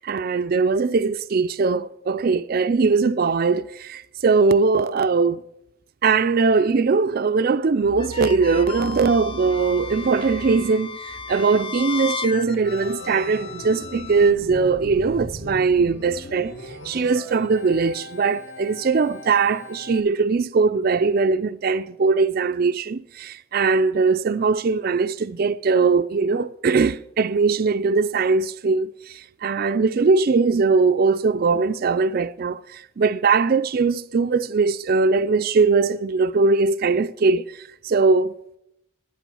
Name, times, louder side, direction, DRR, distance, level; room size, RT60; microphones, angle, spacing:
voice 1, 0.0-5.4 6.0-16.6 16.8-38.3, right 4 dB, 45° right, 0.4 m, -20 dB
sound 1, 8.0-14.3, left 5 dB, 25° left, 0.4 m, -35 dB
Organ, 12.6-20.0, left 2 dB, 55° left, 1.2 m, -40 dB
10.0 x 9.0 x 7.0 m
head